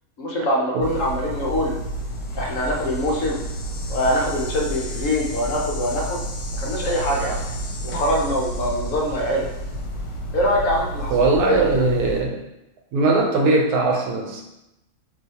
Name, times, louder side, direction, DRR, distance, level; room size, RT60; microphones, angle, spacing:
voice 1, 0.2-1.8 2.3-3.4 3.9-6.2 6.6-7.4 7.8-9.5 10.3-11.1 11.5-11.8, equal, 60° left, -2 dB, 1.1 m, -23 dB
sound 1, 0.8-12.2, right 1 dB, 80° left, 1.3 m, -30 dB
voice 2, 11.1-12.4 12.9-14.4, right 3 dB, 80° right, 1 dB, 1.2 m, -20 dB
6.2 x 2.5 x 2.8 m, 0.90 s
omnidirectional pair, 1.6 m